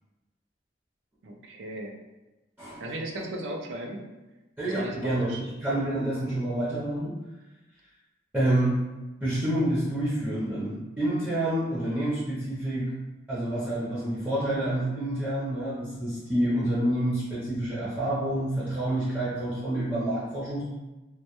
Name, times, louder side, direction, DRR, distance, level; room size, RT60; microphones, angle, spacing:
voice 1, 1.2-1.9 2.8-4.0 4.6-5.4, right 1 dB, 80° right, 1 dB, 0.4 m, -36 dB
voice 2, 4.6-7.1 8.3-8.8 9.2-12.9 13.3-20.7, right 1 dB, 10° right, -9 dB, 0.5 m, -28 dB
2.1 x 2.1 x 2.8 m, 1.1 s
head